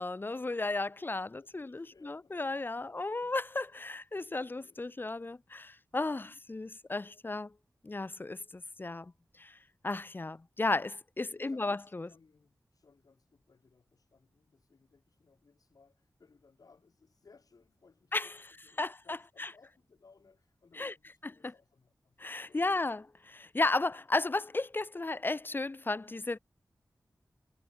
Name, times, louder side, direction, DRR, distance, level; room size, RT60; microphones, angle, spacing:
voice 1, 0.0-7.5 7.8-9.1 9.4-9.6 9.8-12.1 18.1-18.4 18.8-19.5 20.7-20.9 21.2-21.5 22.2-26.4, left 2 dB, 30° left, 0.8 m, -34 dB
voice 2, 1.3-2.7 3.2-3.4 3.9-4.0 4.6-4.8 8.3-8.4 11.3-22.6, left 4 dB, 70° left, 7.1 m, -64 dB
wide cardioid pair, 75°, 6 cm